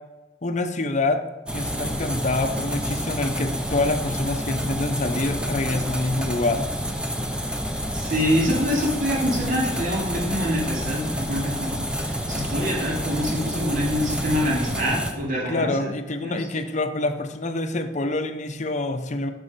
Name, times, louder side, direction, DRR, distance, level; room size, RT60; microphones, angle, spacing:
voice 1, 0.4-1.2 1.5-6.7 15.4-19.3, left 2 dB, 40° left, 7 dB, 0.7 m, -26 dB
sound 1, 1.5-15.1, equal, 5° right, 0.8 m, -29 dB
voice 2, 7.9-15.9 16.2-16.5, equal, 50° right, -3 dB, 2.4 m, -25 dB
7.0 x 6.3 x 5.1 m, 1.1 s
head